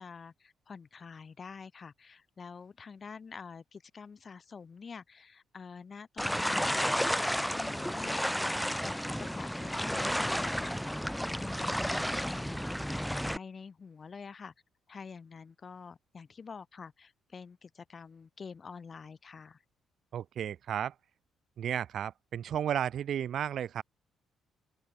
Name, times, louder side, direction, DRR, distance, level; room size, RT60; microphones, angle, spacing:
voice 1, 0.0-7.0 7.5-13.0 13.2-14.5 14.9-19.6, left 5 dB, 40° left, 7.1 m, -47 dB
sound 1, 6.2-13.4, equal, ahead, 5.9 m, -32 dB
voice 2, 20.1-20.9 21.6-23.8, right 9 dB, 65° right, 4.9 m, -33 dB
open air
cardioid pair, 90°, 0 cm